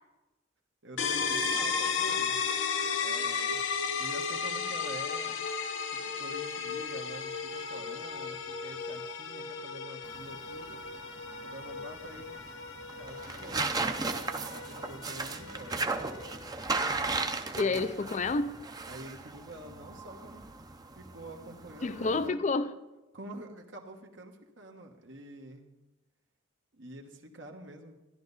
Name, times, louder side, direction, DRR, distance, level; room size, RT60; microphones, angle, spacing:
voice 1, 0.8-2.5 3.0-3.6 4.0-5.4 5.9-10.8 11.4-12.3 12.9-14.2 14.6-15.8 17.5-17.7 18.9-20.5 20.9-22.4 23.1-25.7 26.7-27.9, right 1 dB, 70° right, 1.3 m, -47 dB
sound 1, 1.0-16.5, left 5 dB, 75° left, 0.9 m, -34 dB
sound 2, 10.0-22.3, right 3 dB, 20° right, 0.6 m, -36 dB
voice 2, 17.5-18.6 21.8-22.8, left 3 dB, 35° left, 0.4 m, -29 dB
14.0 x 11.0 x 4.1 m
head